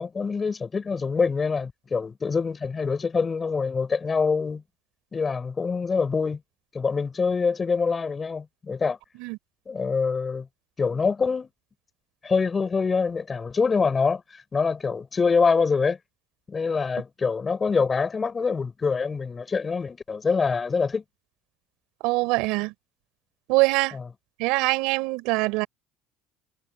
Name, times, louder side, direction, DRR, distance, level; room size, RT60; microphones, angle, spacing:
voice 1, 0.0-4.6 5.1-6.4 6.7-9.0 9.7-10.5 10.8-11.5 12.2-16.0 16.5-21.0 23.9-24.0, left 5 dB, 25° left, 4.4 m, -25 dB
voice 2, 22.0-22.7 23.5-23.9 24.4-25.7, right 23 dB, 75° right, 4.3 m, -23 dB
supercardioid pair, 100°, 0 cm